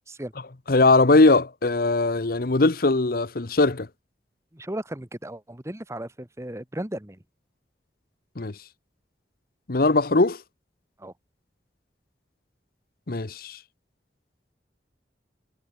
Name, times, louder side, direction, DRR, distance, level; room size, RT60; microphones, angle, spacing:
voice 1, 0.7-3.9 8.4-8.5 9.7-10.4 13.1-13.6, left 3 dB, 55° left, 1.0 m, -20 dB
voice 2, 4.5-7.2 11.0-11.1, right 1 dB, 15° right, 1.3 m, -35 dB
head